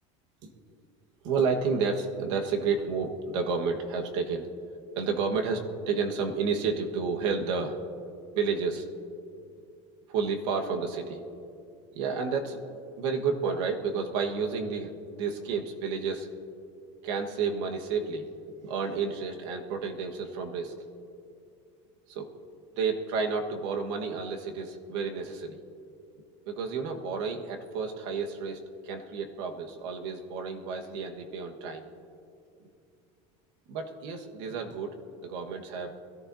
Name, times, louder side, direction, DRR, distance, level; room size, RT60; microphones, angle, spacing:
voice 1, 1.2-4.5 4.9-7.8 8.3-8.8 10.1-11.2 11.9-16.3 17.0-18.3 18.6-20.7 22.1-22.3 22.8-25.6 26.5-31.9 32.6-32.7 33.7-36.0, right 5 dB, 70° right, 3 dB, 1.6 m, -31 dB
22.0 x 14.0 x 2.8 m, 2.5 s
supercardioid pair, 155°, 16 cm